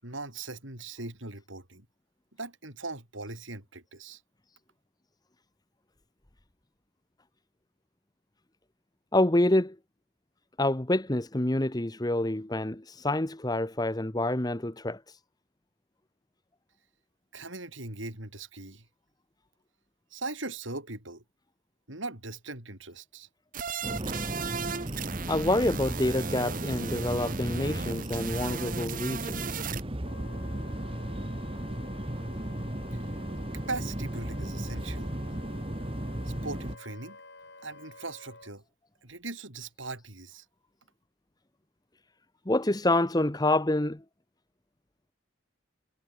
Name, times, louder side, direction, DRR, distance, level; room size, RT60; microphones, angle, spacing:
voice 1, 0.0-1.9 2.4-4.2 17.3-18.9 20.1-21.2 21.9-23.3 32.9-33.0 33.7-35.1 36.2-37.2 37.6-38.6 39.0-40.4, right 3 dB, 75° right, 7.8 m, -39 dB
voice 2, 9.1-9.8 10.6-15.0 25.3-29.5 42.5-44.0, left 1 dB, 20° left, 1.1 m, -27 dB
sound 1, 23.5-29.8, right 6 dB, 45° right, 1.1 m, -36 dB
sound 2, 23.8-36.8, right 1 dB, 30° right, 1.6 m, -35 dB
Wind instrument woodwind instrument, 30.0-38.5, left 3 dB, 60° left, 7.4 m, -50 dB
head